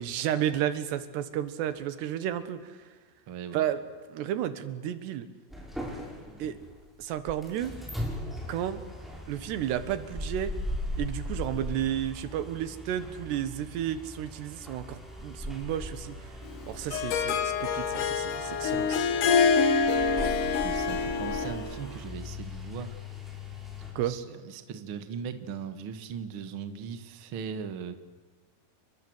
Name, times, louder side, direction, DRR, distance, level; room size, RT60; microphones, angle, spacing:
voice 1, 0.0-2.8 3.5-3.8 4.1-5.3 6.4-6.5 7.0-7.8 8.5-8.8 9.3-10.6 11.0-16.2 16.7-19.0 24.0-24.2, right 11 dB, 90° right, 12 dB, 3.6 m, -32 dB
voice 2, 3.3-3.6 20.5-22.9 24.0-27.9, right 7 dB, 45° right, 9 dB, 1.7 m, -39 dB
sound 1, 5.5-23.9, left 1 dB, ahead, 6.9 m, -39 dB
Harp, 16.5-21.8, left 5 dB, 60° left, 2.6 m, -26 dB
30.0 x 23.5 x 7.9 m, 1.3 s
omnidirectional pair, 4.7 m